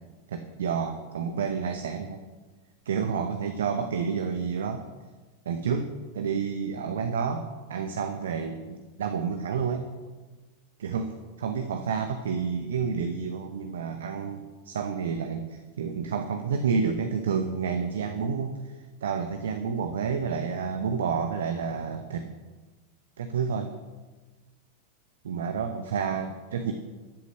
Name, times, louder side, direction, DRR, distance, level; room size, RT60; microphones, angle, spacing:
voice 1, 0.3-2.2 2.8-4.8 5.5-9.8 10.8-22.3 23.2-23.7 25.2-26.7, right 6 dB, 65° right, 7 dB, 0.9 m, -30 dB
13.0 x 8.3 x 6.6 m, 1.3 s
figure-of-eight pair, 90°, 0 cm